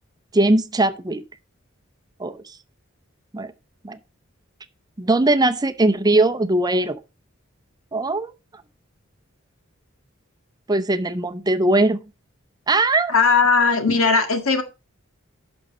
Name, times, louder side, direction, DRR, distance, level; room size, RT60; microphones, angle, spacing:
voice 1, 0.3-1.2 2.2-2.5 3.3-3.5 3.8-4.0 5.0-7.0 7.9-8.3 10.7-12.0 12.7-13.1, right 2 dB, 20° right, 0.6 m, -20 dB
voice 2, 13.1-14.6, left 4 dB, 85° left, 1.8 m, -18 dB
11.5 x 6.2 x 4.1 m
head